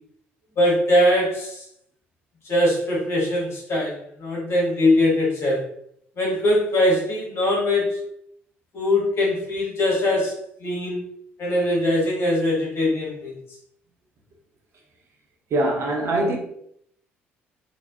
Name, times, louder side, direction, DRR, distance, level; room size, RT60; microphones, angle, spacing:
voice 1, 0.6-1.6 2.4-5.7 6.2-8.0 8.7-10.3 10.6-11.0 11.4-13.3, left 1 dB, 45° left, 1.5 m, -21 dB
voice 2, 15.5-16.4, right 1 dB, 45° right, 0.9 m, -22 dB
4.0 x 2.9 x 2.7 m
figure-of-eight pair, 50°, 6 cm